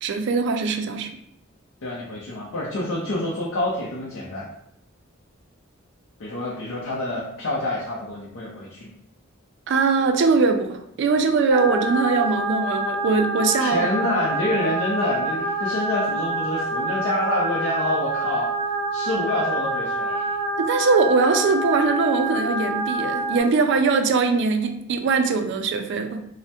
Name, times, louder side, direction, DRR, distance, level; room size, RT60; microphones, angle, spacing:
voice 1, 0.0-1.1 9.7-13.9 20.6-26.2, right 4 dB, 60° right, 6 dB, 0.3 m, -21 dB
voice 2, 1.8-4.5 6.2-8.9 13.6-18.5 18.9-20.3, left 1 dB, 90° left, -5 dB, 0.5 m, -27 dB
sound 1, 11.5-23.4, right 2 dB, 20° left, 0.4 m, -27 dB
3.2 x 2.0 x 2.8 m, 0.74 s
head